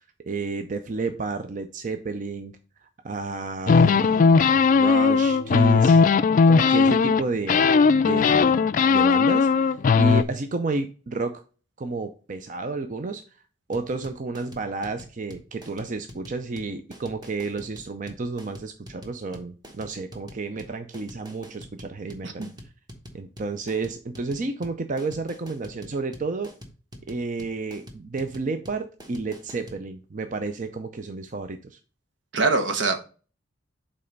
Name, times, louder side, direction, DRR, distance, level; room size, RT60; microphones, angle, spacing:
voice 1, 0.3-2.6 3.0-6.0 6.5-7.7 7.9-8.6 8.9-11.4 11.8-13.2 13.7-22.5 23.1-26.5 27.1-31.8, right 3 dB, 45° right, 8 dB, 0.6 m, -31 dB
sound 1, 3.7-7.2 7.5-10.2, left 5 dB, 45° left, 0.3 m, -18 dB
sound 2, 13.7-29.8, equal, 25° right, 1.2 m, -45 dB
voice 2, 32.3-33.0, right 3 dB, 75° right, 7 dB, 1.1 m, -23 dB
5.5 x 4.2 x 5.2 m, 0.37 s
head